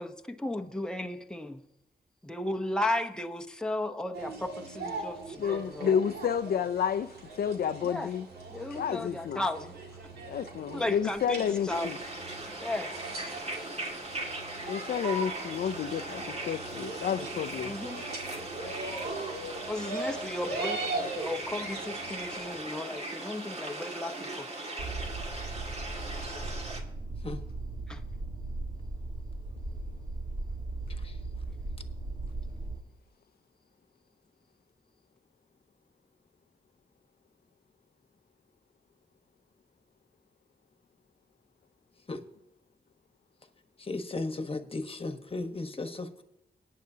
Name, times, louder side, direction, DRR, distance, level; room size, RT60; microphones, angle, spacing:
voice 1, 0.0-1.6 2.2-6.0 7.8-8.1 8.5-9.8 10.7-12.1 12.6-12.9 17.6-18.0 19.7-24.5 27.9-28.0, left 1 dB, 5° left, 5 dB, 0.9 m, -35 dB
sound 1, 4.1-22.6, right 3 dB, 90° right, 2.1 m, -40 dB
voice 2, 5.4-7.1 7.4-8.2 8.7-9.4 10.3-12.0 14.7-17.7, left 8 dB, 75° left, 10 dB, 0.4 m, -30 dB
sound 2, 11.7-26.8, right 2 dB, 40° right, 2.1 m, -39 dB
sound 3, 24.8-32.8, right 2 dB, 60° right, 2.3 m, -37 dB
voice 3, 43.9-46.2, left 2 dB, 35° left, 7 dB, 1.3 m, -35 dB
22.0 x 9.4 x 2.8 m, 0.85 s
cardioid pair, 70°, 16 cm